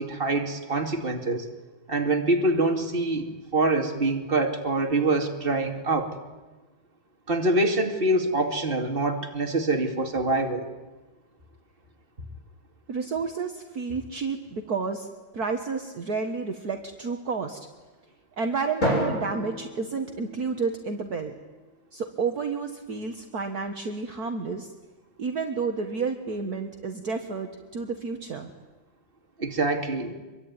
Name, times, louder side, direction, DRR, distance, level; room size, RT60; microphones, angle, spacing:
voice 1, 0.0-1.5 1.9-6.1 7.3-10.7 29.4-30.1, right 2 dB, 30° right, 4 dB, 2.7 m, -25 dB
voice 2, 12.9-15.1 15.3-17.6 18.4-21.3 21.9-24.7 25.2-28.5, right 4 dB, 50° right, 5 dB, 2.0 m, -30 dB
Drum, 18.8-21.1, equal, 40° left, 7.8 m, -30 dB
25.5 x 23.0 x 9.7 m, 1.2 s
omnidirectional pair, 2.1 m